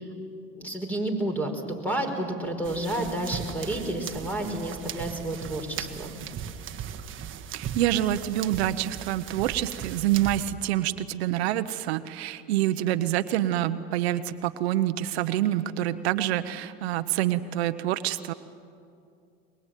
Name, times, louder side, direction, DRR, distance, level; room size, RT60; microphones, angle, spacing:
voice 1, 0.5-6.1, right 1 dB, 5° left, 4 dB, 5.0 m, -30 dB
sound 1, 2.6-10.4, right 8 dB, 40° right, 1.5 m, -38 dB
voice 2, 7.5-18.3, right 13 dB, 85° right, 11 dB, 1.0 m, -27 dB
23.0 x 22.0 x 9.2 m, 2.5 s
supercardioid pair, 95°, 31 cm